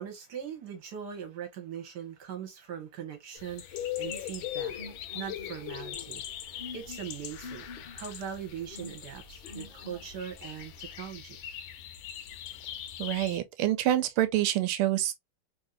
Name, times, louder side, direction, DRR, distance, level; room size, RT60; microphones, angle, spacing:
voice 1, 0.0-4.7 5.1-6.2 6.7-7.7 7.9-11.4, right 8 dB, 55° right, 1.4 m, -40 dB
sound 1, 3.4-13.4, left 11 dB, 75° left, 1.3 m, -40 dB
sound 2, 4.0-11.1, left 2 dB, 55° left, 0.6 m, -48 dB
voice 2, 13.0-15.1, right 13 dB, 80° right, 1.5 m, -27 dB
3.5 x 2.7 x 2.3 m
omnidirectional pair, 2.4 m